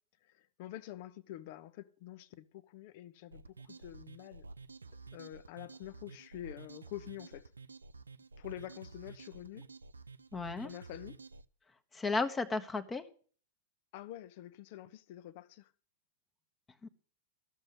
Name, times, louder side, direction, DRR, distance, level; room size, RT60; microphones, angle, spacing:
voice 1, 0.2-4.4 5.1-7.5 8.4-9.7 10.6-11.2 13.9-15.7, left 13 dB, 50° left, 0.8 m, -47 dB
sound 1, 3.3-11.5, right 3 dB, 80° right, 0.5 m, -51 dB
voice 2, 10.3-10.7 11.9-13.1 16.8-16.9, left 3 dB, 15° left, 1.1 m, -34 dB
13.5 x 6.5 x 8.0 m
figure-of-eight pair, 100°, 0 cm